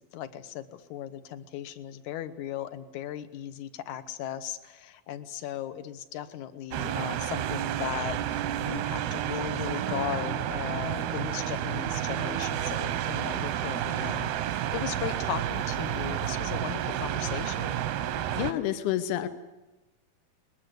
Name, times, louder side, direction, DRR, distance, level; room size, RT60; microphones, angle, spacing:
voice 1, 0.1-17.8, left 10 dB, 65° left, 12 dB, 2.1 m, -37 dB
sound 1, 6.7-18.5, right 11 dB, 90° right, 3.0 m, -30 dB
voice 2, 18.3-19.3, left 12 dB, 85° left, 11 dB, 3.0 m, -29 dB
22.0 x 21.0 x 8.0 m, 1.1 s
omnidirectional pair, 4.5 m